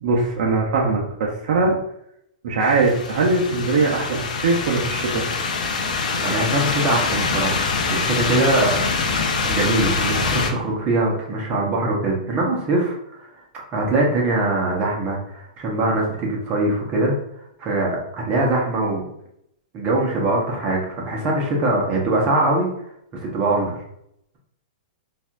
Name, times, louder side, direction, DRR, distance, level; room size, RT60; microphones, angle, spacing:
voice 1, 0.0-1.8 2.4-5.3, right 3 dB, 60° right, -3 dB, 0.7 m, -21 dB
sound 1, 2.6-10.5, left 4 dB, 75° left, 0.6 m, -24 dB
voice 2, 6.2-8.9 9.5-13.3 13.7-17.1 17.6-19.1 19.7-22.7 23.2-23.8, right 2 dB, 30° right, -2 dB, 1.2 m, -22 dB
4.1 x 2.7 x 2.5 m, 0.75 s
hypercardioid pair, 125°, 4 cm